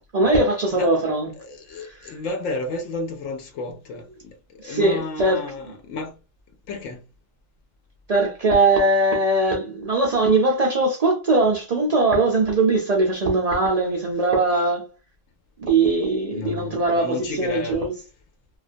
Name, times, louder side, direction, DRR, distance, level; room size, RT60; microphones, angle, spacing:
voice 1, 0.1-1.3 1.8-2.1 4.6-5.4 8.1-14.8 15.6-17.9, right 2 dB, 75° right, 0.3 m, -20 dB
voice 2, 1.4-6.2 6.7-7.0 16.3-17.9, left 3 dB, 80° left, 1.0 m, -32 dB
2.3 x 2.3 x 2.4 m
omnidirectional pair, 1.3 m